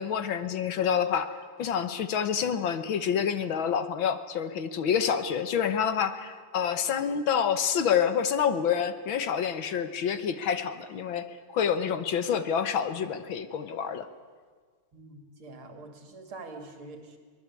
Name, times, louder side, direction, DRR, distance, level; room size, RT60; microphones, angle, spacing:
voice 1, 0.0-11.3 11.5-14.1, left 7 dB, 65° left, 11 dB, 1.9 m, -28 dB
voice 2, 14.9-17.2, right 3 dB, 75° right, 5 dB, 3.5 m, -45 dB
23.5 x 20.0 x 8.4 m, 1.6 s
omnidirectional pair, 2.4 m